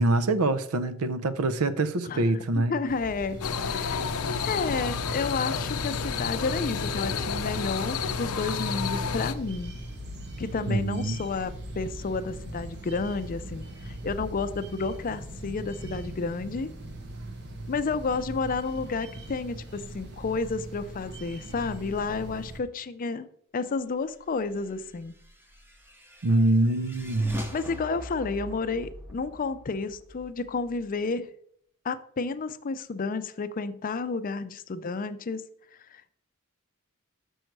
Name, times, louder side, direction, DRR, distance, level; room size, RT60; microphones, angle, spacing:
voice 1, 0.0-2.7 10.6-11.2 26.2-27.3, right 2 dB, 85° right, 0.6 m, -25 dB
voice 2, 2.0-3.4 3.7-4.1 4.4-9.7 10.4-16.7 17.7-23.3 23.5-25.1 27.5-31.3 31.8-35.4 35.9-36.1, left 4 dB, 40° left, 0.4 m, -31 dB
sound 1, 2.9-22.6, right 1 dB, 50° right, 1.0 m, -40 dB
sound 2, 3.4-9.3, left 6 dB, 85° left, 0.6 m, -30 dB
sound 3, 25.2-30.8, equal, 10° right, 0.8 m, -40 dB
6.5 x 6.2 x 4.6 m
head